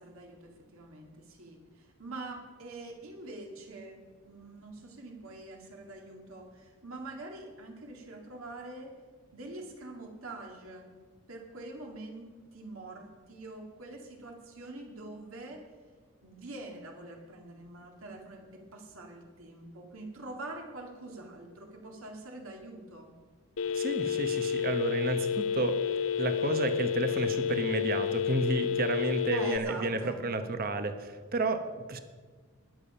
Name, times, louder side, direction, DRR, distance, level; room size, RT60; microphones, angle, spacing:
voice 1, 0.0-4.0 4.2-8.9 9.3-10.9 11.3-15.6 16.2-23.1 29.3-30.2, right 2 dB, 70° right, 1 dB, 2.2 m, -45 dB
Telephone, 23.6-29.6, left 8 dB, 65° left, 0.5 m, -30 dB
voice 2, 23.7-25.8 26.2-32.0, right 2 dB, 45° right, 9 dB, 0.9 m, -31 dB
20.0 x 7.0 x 5.6 m, 1.4 s
head